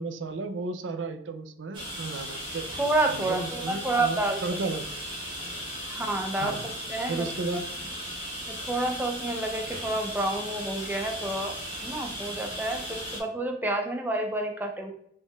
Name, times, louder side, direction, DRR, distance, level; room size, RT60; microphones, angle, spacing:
voice 1, 0.0-2.7 3.1-4.8 6.4-6.7 7.1-7.7, right 3 dB, 85° right, 9 dB, 0.4 m, -33 dB
sound 1, 1.7-13.2, equal, 25° right, 1.2 m, -37 dB
voice 2, 2.8-4.4 5.9-6.6 6.9-7.2 8.5-11.5 11.8-14.9, right 2 dB, 10° right, 2 dB, 0.5 m, -29 dB
4.2 x 3.6 x 2.3 m, 0.71 s
head